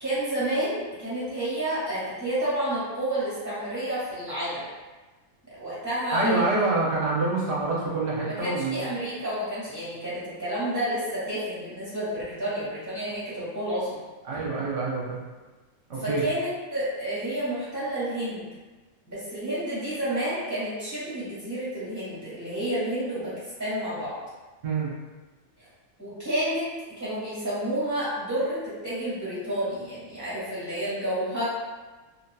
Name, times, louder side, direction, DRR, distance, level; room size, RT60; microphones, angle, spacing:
voice 1, 0.0-4.6 5.6-6.5 8.2-14.0 16.0-18.4 19.1-23.3 23.6-24.1 25.6-25.7 26.0-26.7 27.0-31.4, right 1 dB, 15° right, -11 dB, 1.3 m, -30 dB
voice 2, 6.1-8.9 14.3-15.2 15.9-16.3 24.6-24.9, right 3 dB, 60° right, -5 dB, 1.0 m, -26 dB
2.9 x 2.7 x 2.2 m, 1.2 s
omnidirectional pair, 1.3 m